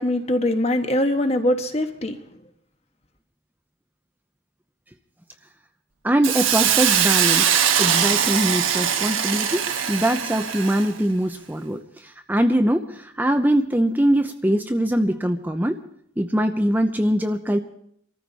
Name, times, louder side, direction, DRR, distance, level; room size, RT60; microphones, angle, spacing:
voice 1, 0.0-2.2, left 1 dB, 30° left, 6 dB, 1.4 m, -22 dB
voice 2, 6.0-15.8 16.2-17.6, right 1 dB, 10° right, 6 dB, 0.7 m, -22 dB
Hiss, 6.2-11.0, right 9 dB, 90° right, 1.3 m, -21 dB
24.5 x 14.0 x 4.1 m, 0.68 s
head